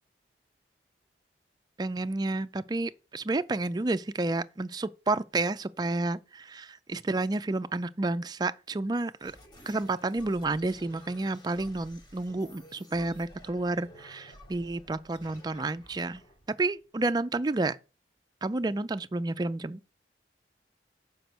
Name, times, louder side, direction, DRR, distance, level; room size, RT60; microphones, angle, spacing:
voice 1, 1.8-9.3 9.7-16.2 16.6-17.8 18.4-19.8, right 2 dB, 25° right, 0.4 m, -30 dB
sound 1, 9.2-17.4, equal, 25° left, 1.0 m, -53 dB
6.6 x 5.1 x 6.0 m
head